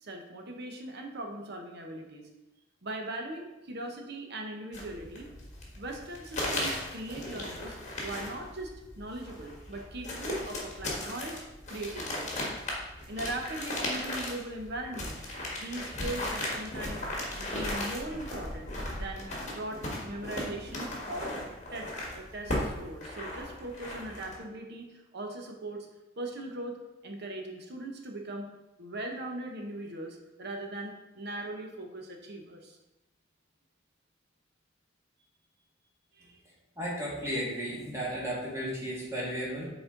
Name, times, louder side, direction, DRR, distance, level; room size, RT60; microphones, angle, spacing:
voice 1, 0.0-2.3 2.8-5.3 5.8-11.4 11.7-12.3 13.1-15.2 15.5-17.0 17.3-21.3 21.7-25.9 26.2-26.8 27.0-28.5 28.8-32.8 36.1-36.4, right 1 dB, 55° right, 3 dB, 0.9 m, -40 dB
sound 1, 4.7-24.4, left 1 dB, 35° left, 1.5 m, -37 dB
voice 2, 36.8-39.7, equal, 15° right, -6 dB, 2.0 m, -34 dB
7.0 x 4.2 x 3.9 m, 1.0 s
head